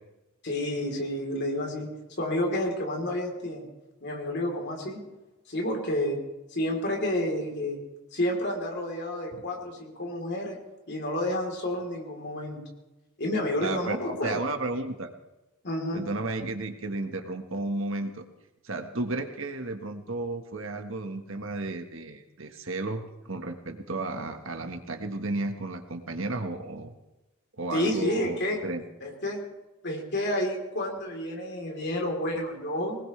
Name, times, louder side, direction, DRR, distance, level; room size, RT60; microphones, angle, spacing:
voice 1, 0.4-1.9 2.2-3.7 4.0-5.0 5.5-6.2 6.5-7.8 8.1-10.6 10.9-12.6 13.2-14.4 15.6-16.1 27.7-28.6 29.0-29.4 29.8-33.0, left 1 dB, 50° left, 1 dB, 3.7 m, -30 dB
voice 2, 13.6-14.0 14.2-15.1 15.9-18.2 18.6-26.9 27.6-28.8, right 2 dB, 60° right, 6 dB, 1.5 m, -33 dB
21.5 x 19.5 x 3.3 m, 1.0 s
head